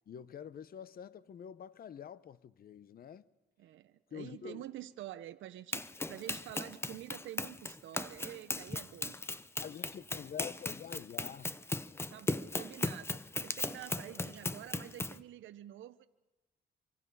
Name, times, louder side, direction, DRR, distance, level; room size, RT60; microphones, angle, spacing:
voice 1, 0.1-3.3 4.1-4.6 9.6-11.5, left 8 dB, 50° left, 0.7 m, -47 dB
voice 2, 3.6-9.2 12.1-16.1, right 13 dB, 75° right, 0.7 m, -48 dB
Run, 5.7-15.2, left 2 dB, 10° left, 0.7 m, -38 dB
25.5 x 24.5 x 5.5 m
cardioid pair, 90°, 20 cm